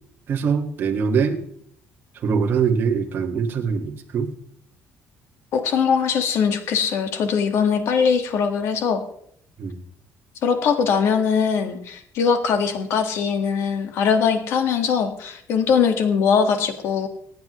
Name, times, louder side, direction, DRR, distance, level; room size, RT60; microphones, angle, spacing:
voice 1, 0.3-1.4 2.2-4.3 9.6-9.8, right 6 dB, 45° right, 2 dB, 1.8 m, -22 dB
voice 2, 5.5-9.0 10.4-17.1, left 6 dB, 65° left, 7 dB, 1.8 m, -21 dB
25.0 x 9.5 x 3.2 m, 0.67 s
cardioid pair, 155°, 5 cm